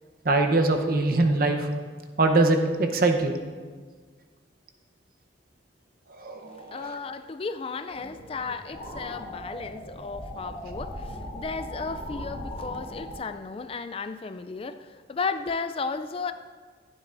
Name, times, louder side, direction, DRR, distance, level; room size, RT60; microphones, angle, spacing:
voice 1, 0.2-1.7 2.2-3.3 6.2-6.9, right 2 dB, 50° right, 5 dB, 0.9 m, -23 dB
voice 2, 6.6-16.3, left 4 dB, 30° left, 10 dB, 0.3 m, -34 dB
sound 1, 7.9-13.2, left 1 dB, 45° left, 2.4 m, -38 dB
14.5 x 11.5 x 2.6 m, 1.5 s
head